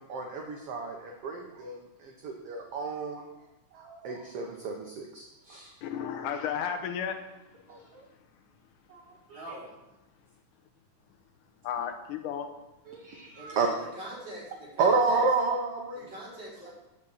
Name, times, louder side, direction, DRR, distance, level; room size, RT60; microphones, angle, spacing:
voice 1, 0.0-3.2 3.7-5.7 7.7-8.0 8.9-9.4 12.9-13.7 14.8-16.1, right 4 dB, 65° right, 1 dB, 1.6 m, -31 dB
voice 2, 5.8-7.3 11.6-12.5, left 8 dB, 85° left, 6 dB, 2.4 m, -33 dB
voice 3, 9.3-9.7 13.4-13.6 13.9-15.2 15.9-16.8, right 1 dB, 35° right, -8 dB, 4.8 m, -43 dB
9.8 x 5.2 x 7.6 m, 0.98 s
omnidirectional pair, 3.5 m